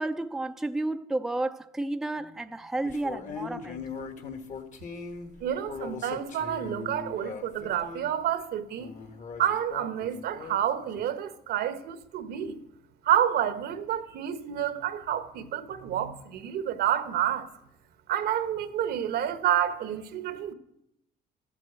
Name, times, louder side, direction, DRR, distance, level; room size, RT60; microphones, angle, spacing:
voice 1, 0.0-3.9, right 2 dB, ahead, 0.5 m, -31 dB
sound 1, 2.8-8.1 8.8-11.1, left 5 dB, 45° left, 1.4 m, -40 dB
voice 2, 5.4-8.9 9.4-12.6 13.0-17.5 18.1-20.5, right 10 dB, 70° right, 1.0 m, -29 dB
13.0 x 7.5 x 7.8 m
cardioid pair, 110°, 17 cm